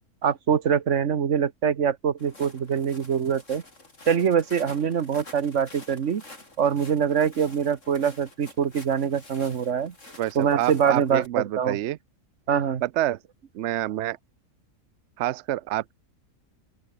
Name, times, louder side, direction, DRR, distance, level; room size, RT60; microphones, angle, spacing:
voice 1, 0.2-3.6 4.1-6.2 6.6-9.9 10.3-11.8 12.5-12.8, right 7 dB, 50° right, 1.4 m, -24 dB
Walk footsteps, 2.2-11.3, left 2 dB, 50° left, 5.4 m, -48 dB
voice 2, 10.2-12.0 12.8-13.2 13.5-14.2 15.2-15.9, right 14 dB, 70° right, 0.6 m, -27 dB
open air
omnidirectional pair, 1.7 m